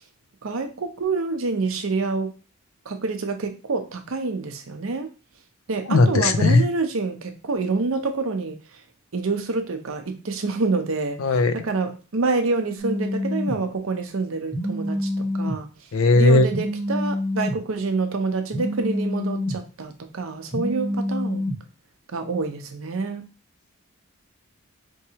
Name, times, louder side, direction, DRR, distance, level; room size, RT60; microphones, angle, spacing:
voice 1, 0.4-2.3 2.9-5.1 5.7-8.6 9.1-15.7 16.2-21.5 22.1-23.3, right 3 dB, 70° right, 6 dB, 0.7 m, -27 dB
voice 2, 5.9-6.6 11.2-11.6 15.9-16.5, left 2 dB, 70° left, 10 dB, 0.5 m, -17 dB
Telephone, 12.8-13.6 14.5-15.6 16.5-17.6 18.5-19.6 20.5-21.6, left 1 dB, 30° left, 1.4 m, -26 dB
4.5 x 2.8 x 2.8 m, 0.33 s
head